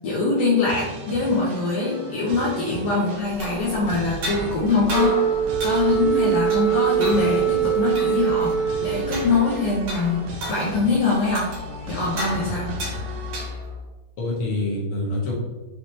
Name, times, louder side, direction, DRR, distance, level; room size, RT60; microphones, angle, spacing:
voice 1, 0.0-5.2 5.6-11.6 11.8-12.7, left 3 dB, 70° left, -5 dB, 1.6 m, -23 dB
sound 1, 0.7-13.5, right 1 dB, 85° right, 2.4 m, -37 dB
sound 2, 3.2-13.9, left 1 dB, 65° right, 2.4 m, -34 dB
Wind instrument woodwind instrument, 4.9-9.3, right 8 dB, 90° left, 2.1 m, -22 dB
voice 2, 12.4-12.9 14.2-15.3, left 2 dB, 55° left, -5 dB, 1.8 m, -27 dB
5.9 x 3.1 x 2.7 m, 1.2 s
omnidirectional pair, 3.5 m